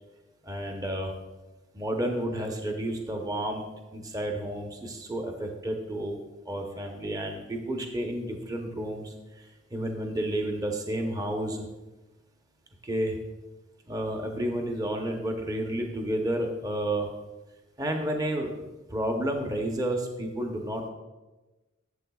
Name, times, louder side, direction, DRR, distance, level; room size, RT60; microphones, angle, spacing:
voice 1, 0.4-1.1 1.7-3.6 3.9-6.2 6.4-11.7 12.8-13.2 13.9-17.1 17.8-18.5 18.9-20.9, right 1 dB, 20° right, 3 dB, 0.8 m, -31 dB
12.5 x 7.3 x 2.3 m, 1.1 s
head